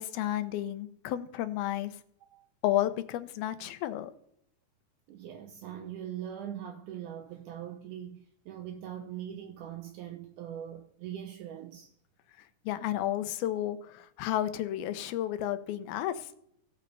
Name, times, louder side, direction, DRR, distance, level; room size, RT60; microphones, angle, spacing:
voice 1, 0.0-2.0 2.6-4.1 12.4-16.4, left 13 dB, 85° left, 2.6 m, -32 dB
voice 2, 5.1-11.9, right 10 dB, 85° right, 1.8 m, -41 dB
16.5 x 7.8 x 3.2 m
omnidirectional pair, 4.3 m